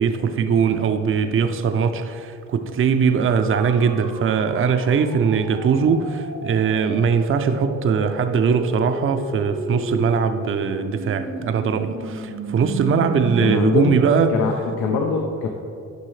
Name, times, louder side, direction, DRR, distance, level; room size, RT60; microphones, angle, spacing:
voice 1, 0.0-14.3, right 6 dB, 45° right, 0.6 m, -20 dB
sound 1, 3.1-13.5, right 3 dB, 80° right, 1.3 m, -34 dB
voice 2, 13.4-14.0 14.3-15.5, left 5 dB, 85° left, 0.7 m, -22 dB
10.5 x 5.4 x 3.2 m
cardioid pair, 90°, 30 cm